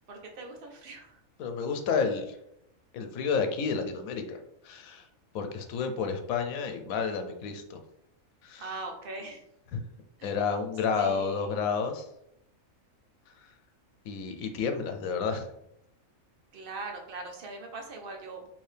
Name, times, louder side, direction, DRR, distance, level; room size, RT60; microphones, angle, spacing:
voice 1, 0.1-1.2 8.6-9.4 10.2-10.3 10.9-11.5 16.5-18.5, right 3 dB, 50° right, 2 dB, 0.8 m, -41 dB
voice 2, 1.4-2.4 2.9-4.4 4.6-5.0 5.3-7.8 8.4-8.6 9.7-9.8 10.2-12.1 14.1-15.4, left 5 dB, 90° left, 6 dB, 1.0 m, -30 dB
4.5 x 2.9 x 3.3 m, 0.79 s
omnidirectional pair, 1.4 m